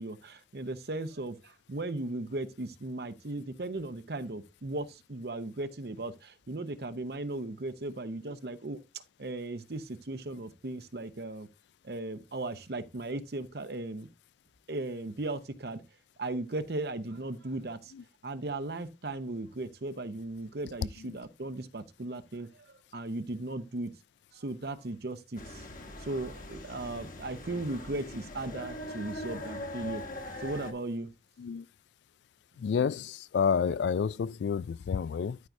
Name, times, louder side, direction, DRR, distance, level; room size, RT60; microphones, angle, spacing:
voice 1, 0.0-11.5 11.8-14.1 14.7-15.8 16.2-17.9 18.2-23.9 24.3-25.6 26.0-30.0 30.4-31.1, right 2 dB, 65° right, 0.8 m, -37 dB
sound 1, 25.4-30.7, left 1 dB, 50° left, 1.2 m, -41 dB
voice 2, 32.6-35.4, left 6 dB, 85° left, 0.3 m, -29 dB
13.0 x 4.7 x 2.7 m
head